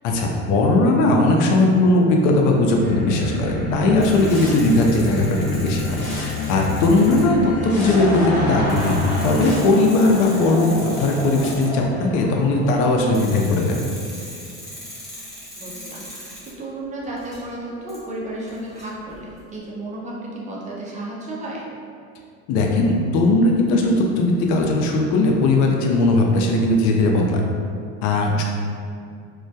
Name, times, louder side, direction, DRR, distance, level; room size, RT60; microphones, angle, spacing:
voice 1, 0.0-13.8 22.5-27.4 28.0-28.4, left 2 dB, 65° left, 1 dB, 0.5 m, -18 dB
sound 1, 2.7-9.5, left 3 dB, 80° left, 0.9 m, -29 dB
sound 2, 4.0-7.4 8.2-8.3 8.7-11.7 13.1-16.5 17.0-17.5 17.9-18.0 18.5-19.4, equal, ahead, 0.8 m, -39 dB
Laughter / Crowd, 7.5-13.6, equal, 25° left, 1.1 m, -31 dB
voice 2, 15.6-21.7, right 1 dB, 25° right, -4 dB, 0.4 m, -33 dB
2.1 x 2.1 x 2.7 m, 2.3 s
supercardioid pair, 120°, 33 cm